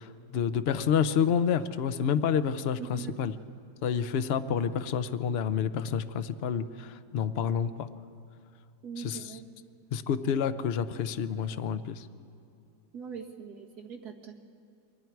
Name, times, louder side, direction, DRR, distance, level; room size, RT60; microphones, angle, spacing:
voice 1, 0.0-3.3 3.8-7.9 9.0-9.3 9.9-12.1, left 7 dB, 55° left, 11 dB, 0.7 m, -29 dB
voice 2, 2.8-3.2 8.8-9.4 12.9-14.4, right 6 dB, 65° right, 1 dB, 2.3 m, -42 dB
28.5 x 22.5 x 4.7 m, 2.6 s
omnidirectional pair, 1.8 m